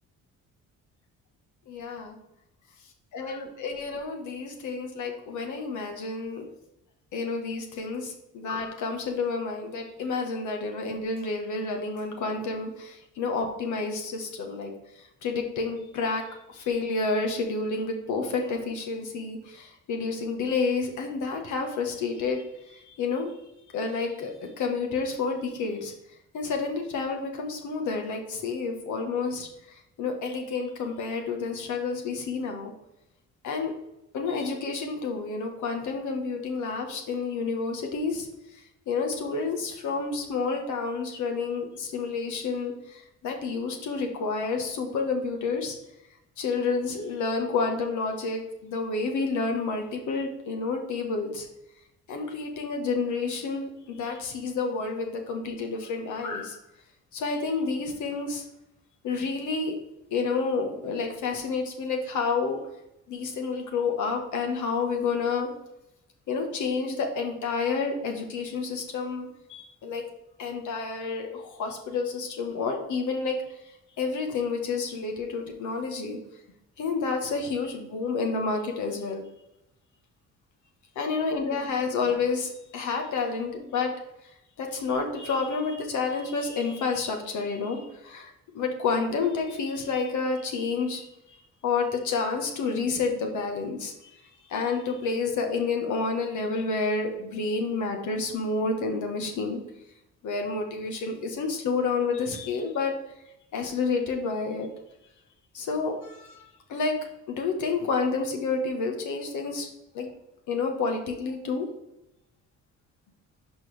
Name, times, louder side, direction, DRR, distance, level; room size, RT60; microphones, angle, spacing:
voice 1, 1.7-2.2 3.1-6.5 7.1-23.3 23.7-25.9 26.3-32.7 33.4-33.7 34.1-38.3 38.9-45.7 46.4-51.5 52.1-56.6 57.1-58.4 59.0-59.8 60.1-62.6 63.1-65.5 66.3-70.0 70.4-73.4 74.0-76.2 76.8-79.2 81.0-83.9 84.6-91.1 91.6-94.2 94.5-99.6 100.2-102.9 103.5-104.7 105.5-106.4 106.7-107.0 107.3-109.7 109.9-110.1 110.5-111.7, left 4 dB, 75° left, 3 dB, 1.3 m, -29 dB
11.0 x 4.6 x 3.4 m, 0.86 s
cardioid pair, 90°, 30 cm